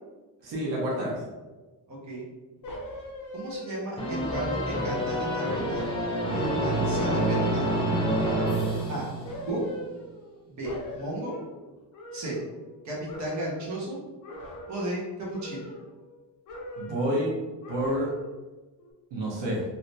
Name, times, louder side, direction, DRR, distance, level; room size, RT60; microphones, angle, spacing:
voice 1, 0.4-1.2 16.8-17.4 17.7-18.1 19.1-19.6, equal, 75° right, -4 dB, 1.1 m, -28 dB
voice 2, 1.9-2.3 3.3-5.8 6.3-7.7 8.9-9.1 9.5-9.6 10.5-11.3 12.1-12.4 12.8-14.0 14.7-15.7, right 1 dB, 40° right, -5 dB, 1.2 m, -34 dB
sound 1, 2.6-3.9 4.3-5.4 5.7-7.8 8.2-8.8 9.2-10.4 10.6-12.8 13.1-13.8 14.2-15.0 15.3-16.2 16.5-17.2 17.6-18.4 18.8-18.9, equal, 45° left, 0.8 m, -40 dB
sound 2, 4.0-9.6, right 1 dB, 10° left, 0.7 m, -28 dB
3.3 x 2.9 x 2.7 m, 1.2 s
cardioid pair, 140°, 44 cm